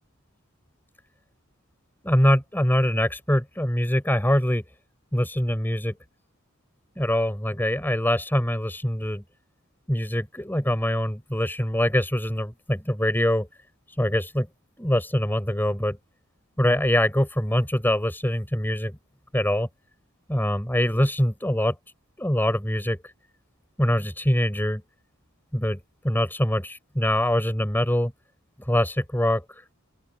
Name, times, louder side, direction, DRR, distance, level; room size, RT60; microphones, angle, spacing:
voice 1, 2.0-4.6 5.1-5.9 7.0-9.2 9.9-13.5 14.0-14.5 14.8-16.0 16.6-19.0 19.3-19.7 20.3-21.7 22.2-23.0 23.8-24.8 25.5-25.8 26.0-28.1 28.7-29.6, equal, 10° left, 4.5 m, -23 dB
open air
head